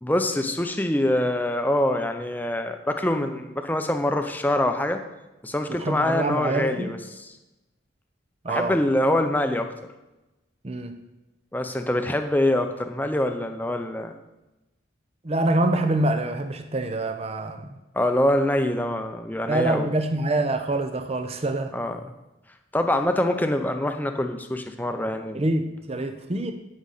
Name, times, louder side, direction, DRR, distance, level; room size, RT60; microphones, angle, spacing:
voice 1, 0.0-5.0 5.4-7.3 8.5-9.7 11.5-14.1 17.9-19.9 21.7-22.0 22.7-25.4, left 1 dB, 10° left, 6 dB, 0.6 m, -24 dB
voice 2, 5.7-6.9 8.4-8.7 10.6-11.0 15.2-17.7 19.5-21.7 25.3-26.5, right 2 dB, 30° right, 7 dB, 0.6 m, -25 dB
16.5 x 6.3 x 4.1 m, 1.0 s
head